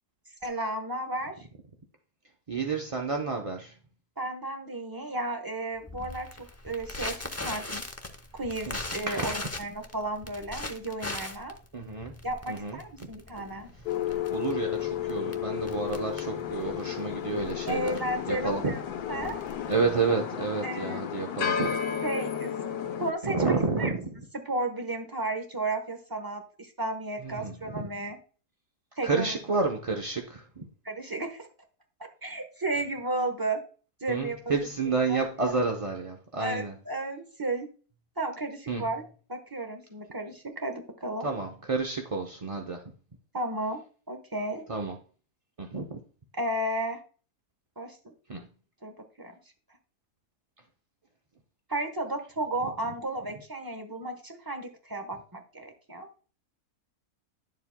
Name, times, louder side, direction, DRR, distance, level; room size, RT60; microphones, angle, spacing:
voice 1, 0.4-1.5 4.2-7.8 8.3-11.5 12.2-13.7 17.6-18.8 19.1-19.4 20.6-21.0 22.0-22.6 23.0-23.5 23.8-23.9 24.4-28.2 29.0-29.4 30.8-31.5 32.2-33.6 34.0-34.5 35.1-35.5 36.4-37.7 38.2-39.0 39.3-41.3 43.3-44.6 46.4-47.0 47.8-48.1 48.8-49.3 51.7-56.1, right 2 dB, 15° right, 1.0 m, -33 dB
voice 2, 2.5-3.8 8.7-8.8 9.1-9.4 11.7-12.2 12.5-13.8 14.3-17.9 18.3-18.8 19.7-21.7 23.2-24.1 27.2-27.9 29.0-30.7 34.1-36.7 38.7-38.9 41.2-42.8 44.7-45.0 45.6-46.0 48.3-48.5, right 4 dB, 35° right, 0.5 m, -30 dB
Crackle, 5.9-20.1, left 2 dB, 20° left, 0.4 m, -40 dB
sound 1, 13.9-23.1, left 9 dB, 80° left, 1.3 m, -33 dB
10.5 x 7.2 x 2.2 m
omnidirectional pair, 1.6 m